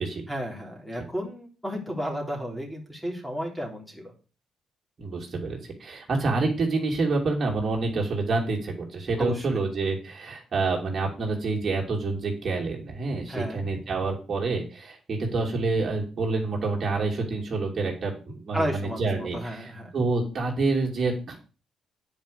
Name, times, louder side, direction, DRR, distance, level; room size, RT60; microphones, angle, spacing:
voice 1, 0.3-4.1 9.2-9.6 13.3-13.6 18.5-19.9, equal, ahead, 1 dB, 3.2 m, -33 dB
voice 2, 5.0-19.7 19.9-21.4, right 3 dB, 45° right, -1 dB, 2.9 m, -27 dB
9.1 x 5.2 x 6.8 m, 0.35 s
cardioid pair, 90°, 0 cm